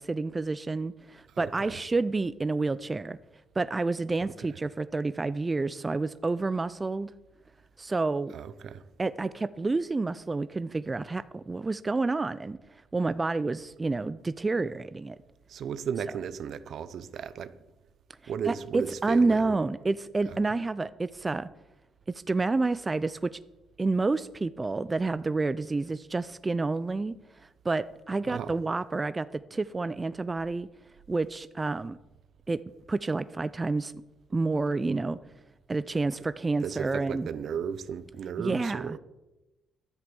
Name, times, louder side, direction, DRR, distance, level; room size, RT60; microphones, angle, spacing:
voice 1, 0.0-3.2 3.6-7.1 7.8-8.3 9.0-12.6 12.9-15.2 18.5-21.5 22.3-23.4 23.8-27.1 27.6-30.7 31.1-32.0 32.5-32.6 32.9-33.9 34.3-35.2 35.7-37.3 38.4-39.0, right 3 dB, 25° right, 15 dB, 0.4 m, -29 dB
voice 2, 1.3-1.8 4.2-4.3 8.3-8.8 15.5-17.6 18.3-19.6 20.3-20.4 28.2-28.6 36.6-39.0, right 7 dB, 65° right, 15 dB, 0.7 m, -35 dB
11.0 x 8.1 x 7.0 m, 1.0 s
cardioid pair, 90°, 0 cm